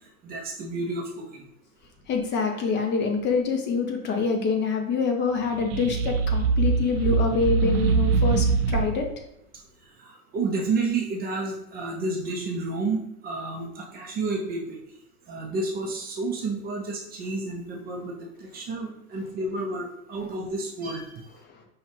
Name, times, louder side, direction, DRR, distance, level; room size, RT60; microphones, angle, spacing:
voice 1, 0.2-1.4 10.0-13.0 13.2-14.8 15.3-21.2, right 3 dB, 20° right, -1 dB, 0.5 m, -30 dB
voice 2, 2.1-9.1, left 4 dB, 25° left, 3 dB, 0.6 m, -26 dB
sound 1, 5.4-9.1, right 5 dB, 80° right, 0.6 m, -23 dB
5.4 x 2.3 x 3.1 m, 0.79 s
hypercardioid pair, 115°, 45 cm